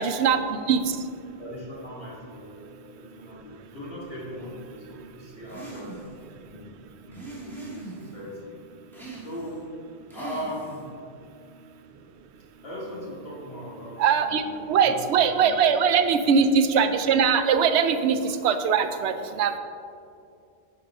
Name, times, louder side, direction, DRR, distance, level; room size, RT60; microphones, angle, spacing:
voice 1, 0.0-1.3 3.0-3.7 4.8-5.4 6.3-6.5 7.1-7.2 11.9-12.1 12.3-12.5 14.0-19.6, right 6 dB, 90° right, 9 dB, 0.8 m, -23 dB
voice 2, 1.4-2.7 2.9-5.9 6.5-6.7 7.0-8.6 9.2-9.6 10.1-10.9 12.6-15.7, equal, 65° left, -7 dB, 2.4 m, -39 dB
sound 1, 5.5-6.2 7.1-8.2 8.9-9.6 10.1-10.9, right 2 dB, ahead, 1.5 m, -40 dB
11.0 x 4.7 x 3.7 m, 2.5 s
omnidirectional pair, 1.1 m